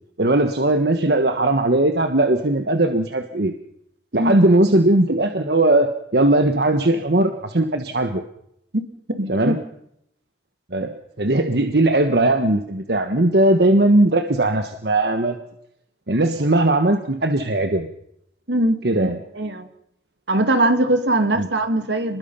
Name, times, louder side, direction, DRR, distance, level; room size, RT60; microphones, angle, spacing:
voice 1, 0.2-3.5 4.1-8.2 9.3-9.6 10.7-15.4 16.1-17.9 18.8-19.2 21.4-21.5, right 1 dB, 65° right, 6 dB, 1.4 m, -19 dB
voice 2, 9.1-9.5 18.5-19.7 20.3-22.2, right 1 dB, 80° right, 8 dB, 2.4 m, -21 dB
29.0 x 21.0 x 5.7 m, 0.76 s
head